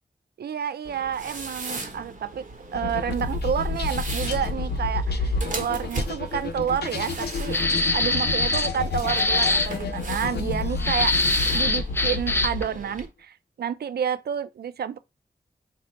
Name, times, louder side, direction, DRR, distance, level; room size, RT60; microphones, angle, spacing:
voice 1, 0.4-2.5 2.7-7.6 7.9-15.0, right 8 dB, 70° right, 0.4 m, -29 dB
sound 1, 0.8-13.1, right 3 dB, 50° right, 1.0 m, -38 dB
sound 2, 2.7-12.9, left 4 dB, 70° left, 0.6 m, -30 dB
sound 3, 7.5-8.8 9.1-9.7 10.8-12.6, left 2 dB, 15° left, 0.6 m, -23 dB
4.2 x 2.1 x 4.2 m
cardioid pair, 60°, 17 cm